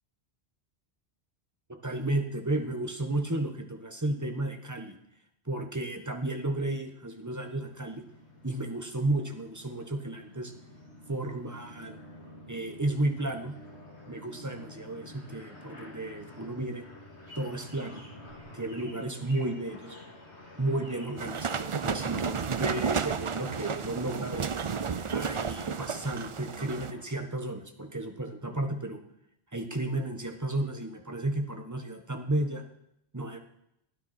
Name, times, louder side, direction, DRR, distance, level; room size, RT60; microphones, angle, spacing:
voice 1, 1.8-5.0 5.4-8.0 8.4-10.5 11.1-12.0 12.5-13.5 14.1-16.8 17.4-18.0 18.5-19.9 20.6-24.5 25.1-29.0 29.5-32.6 33.1-33.4, right 2 dB, 15° right, 5 dB, 1.3 m, -33 dB
sound 1, 7.4-27.1, left 1 dB, 85° left, 2.5 m, -50 dB
sound 2, 17.0-24.0, equal, 70° right, 4.2 m, -55 dB
sound 3, 21.2-26.9, right 6 dB, 40° right, 0.5 m, -32 dB
16.0 x 9.6 x 4.4 m, 0.77 s
omnidirectional pair, 1.1 m